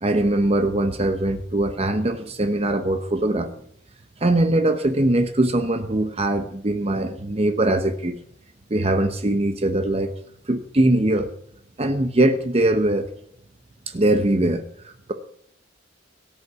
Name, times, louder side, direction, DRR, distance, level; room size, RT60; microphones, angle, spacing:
voice 1, 0.0-3.5 4.2-8.2 8.7-10.1 10.5-11.3 11.8-13.1 13.9-15.1, right 1 dB, 30° right, 8 dB, 0.9 m, -21 dB
18.0 x 6.8 x 9.5 m, 0.69 s
head